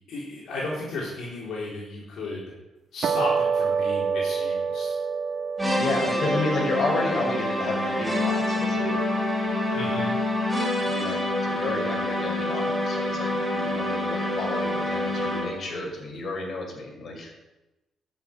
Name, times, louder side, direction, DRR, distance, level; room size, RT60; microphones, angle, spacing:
voice 1, 0.1-2.5 2.9-4.9 9.7-10.1, left 2 dB, 75° left, -5 dB, 4.0 m, -34 dB
sound 1, 3.0-9.5, right 5 dB, 60° right, 1.6 m, -29 dB
sound 2, 5.6-15.7, left 1 dB, 5° right, 5.3 m, -27 dB
voice 2, 5.7-9.0 10.9-17.3, left 2 dB, 50° left, 0 dB, 5.5 m, -31 dB
12.0 x 7.5 x 9.2 m, 1.0 s
cardioid pair, 90°, 0 cm